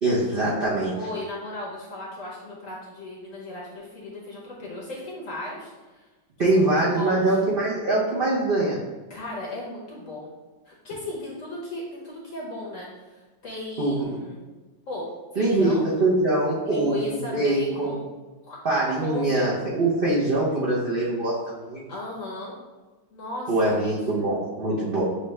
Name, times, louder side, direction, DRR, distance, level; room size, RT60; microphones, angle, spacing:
voice 1, 0.0-1.0 6.4-8.8 13.8-14.2 15.4-17.9 18.6-21.8 23.5-25.1, right 2 dB, 65° right, -7 dB, 0.5 m, -23 dB
voice 2, 1.0-6.1 6.5-7.3 9.1-10.3 10.7-14.4 14.9-15.9 16.7-18.1 18.4-18.6 19.0-19.5 21.9-22.6 23.1-24.0, left 2 dB, 55° left, -5 dB, 1.0 m, -36 dB
6.9 x 2.3 x 3.2 m, 1.2 s
omnidirectional pair, 2.2 m